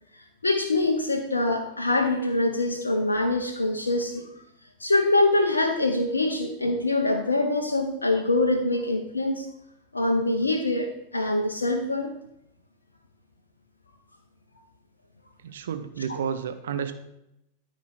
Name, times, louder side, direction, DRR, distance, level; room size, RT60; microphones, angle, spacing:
voice 1, 0.4-4.2 4.8-9.4 9.9-12.1, left 2 dB, 80° left, 4 dB, 0.8 m, -24 dB
voice 2, 15.4-16.9, right 7 dB, 60° right, 9 dB, 0.7 m, -31 dB
12.5 x 4.2 x 4.9 m, 0.83 s
figure-of-eight pair, 90°, 0 cm